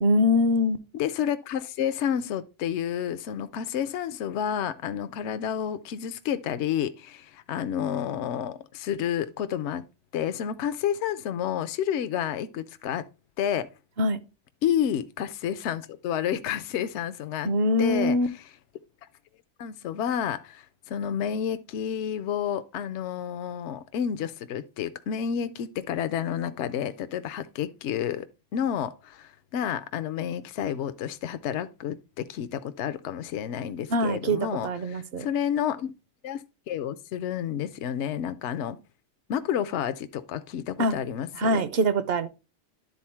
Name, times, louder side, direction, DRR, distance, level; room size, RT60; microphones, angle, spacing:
voice 1, 0.0-0.8 14.0-14.2 17.4-18.3 33.9-35.3 40.8-40.9 41.4-42.3, left 1 dB, 60° right, 0.9 m, -23 dB
voice 2, 0.9-9.9 10.1-13.1 13.4-13.7 14.6-17.5 17.8-18.2 19.6-28.3 28.5-35.9 36.2-38.8 39.3-41.6, left 9 dB, 70° left, 0.9 m, -30 dB
10.5 x 3.9 x 4.4 m
omnidirectional pair, 1.2 m